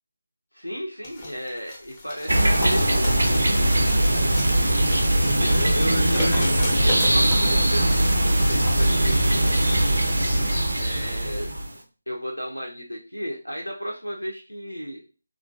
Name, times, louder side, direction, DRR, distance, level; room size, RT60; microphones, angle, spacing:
voice 1, 0.5-3.5 5.2-9.7 10.8-11.6 12.1-15.0, equal, 90° left, 0 dB, 0.6 m, -33 dB
sound 1, 1.0-8.2 8.6-8.7, left 1 dB, 20° left, 0.7 m, -36 dB
sound 2, 2.3-11.7, right 1 dB, 70° right, 0.6 m, -21 dB
3.7 x 2.5 x 2.3 m, 0.35 s
figure-of-eight pair, 155°, 0 cm